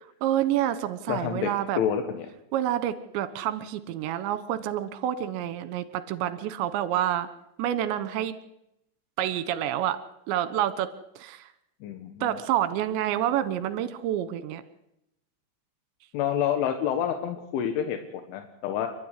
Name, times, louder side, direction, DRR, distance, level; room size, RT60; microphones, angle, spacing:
voice 1, 0.2-1.8 2.5-7.3 7.6-8.3 9.2-10.0 10.3-11.5 12.2-14.6, right 11 dB, 75° right, 13 dB, 3.3 m, -28 dB
voice 2, 1.1-1.5 1.8-2.3 11.8-12.4 16.1-18.9, left 9 dB, 85° left, 6 dB, 3.9 m, -28 dB
28.5 x 12.5 x 9.9 m, 0.84 s
omnidirectional pair, 5.4 m